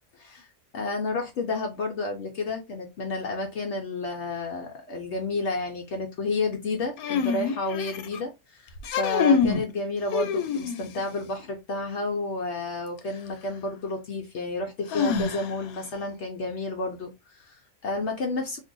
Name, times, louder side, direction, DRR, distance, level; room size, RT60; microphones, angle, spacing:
voice 1, 0.7-18.6, left 2 dB, 60° left, 0.9 m, -31 dB
sound 1, 7.0-8.2 8.8-9.7 10.1-11.0 13.0-13.1 14.9-15.8, left 6 dB, 90° left, 1.1 m, -26 dB
2.7 x 2.5 x 3.6 m
omnidirectional pair, 1.5 m